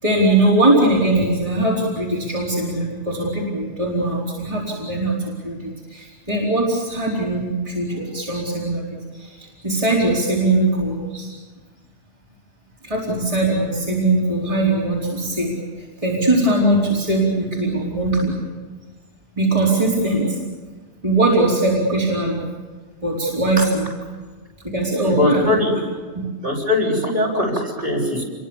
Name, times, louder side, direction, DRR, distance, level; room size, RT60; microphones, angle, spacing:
voice 1, 0.0-11.3 12.8-18.4 19.3-20.4 21.0-22.5 23.0-23.9 24.6-25.6 26.1-26.2, right 2 dB, 30° right, -5 dB, 4.6 m, -20 dB
voice 2, 25.0-25.7 26.4-28.2, left 2 dB, 45° right, -1 dB, 6.9 m, -21 dB
29.0 x 22.5 x 7.3 m, 1.4 s
omnidirectional pair, 1.2 m